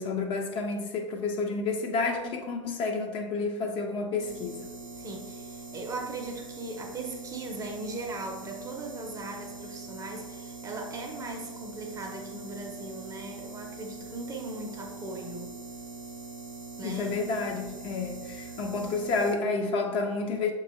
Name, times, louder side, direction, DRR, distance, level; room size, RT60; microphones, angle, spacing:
voice 1, 0.0-4.6 16.8-20.5, left 3 dB, 35° left, 3 dB, 0.5 m, -30 dB
sound 1, 4.2-19.3, right 3 dB, 80° right, 0.6 m, -43 dB
voice 2, 5.0-15.6 16.8-17.2, right 2 dB, 20° right, 2 dB, 0.6 m, -39 dB
6.6 x 2.3 x 3.0 m, 1.2 s
figure-of-eight pair, 90°, 16 cm